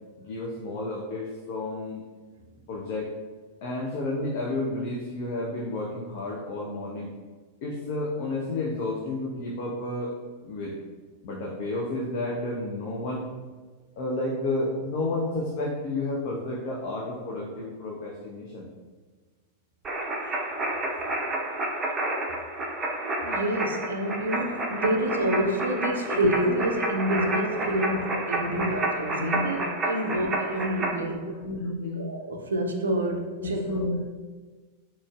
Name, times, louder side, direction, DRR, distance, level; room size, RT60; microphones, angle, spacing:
voice 1, 0.2-2.0 2.7-3.1 3.6-7.1 7.6-10.2 10.4-10.8 11.2-13.3 14.0-18.7 24.8-25.0 25.8-26.6 27.1-27.4 27.8-28.0 28.5-28.8 29.2-29.8 30.1-30.3 30.8-32.1 33.4-34.0, left 2 dB, 50° left, -3 dB, 0.5 m, -31 dB
sound 1, 19.8-30.9, right 2 dB, 20° right, 0.6 m, -30 dB
voice 2, 23.2-31.3 32.0-33.6, right 1 dB, 70° right, 1 dB, 0.4 m, -28 dB
3.8 x 3.0 x 2.3 m, 1.3 s
figure-of-eight pair, 90°, 0 cm